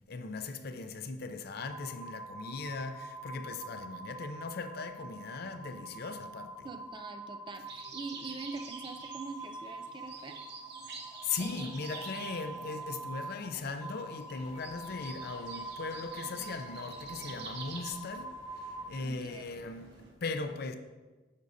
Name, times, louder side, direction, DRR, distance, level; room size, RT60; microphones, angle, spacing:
voice 1, 0.1-6.7 11.2-20.7, left 4 dB, 60° left, 0.5 m, -39 dB
sound 1, 1.6-18.9, right 2 dB, 5° right, 0.8 m, -45 dB
voice 2, 6.6-10.5 11.4-12.0 19.0-19.5, right 3 dB, 25° right, 0.4 m, -44 dB
sound 2, 7.7-17.9, right 4 dB, 65° right, 0.9 m, -48 dB
sound 3, 14.4-20.1, right 1 dB, 85° right, 1.9 m, -57 dB
8.9 x 6.3 x 2.7 m
head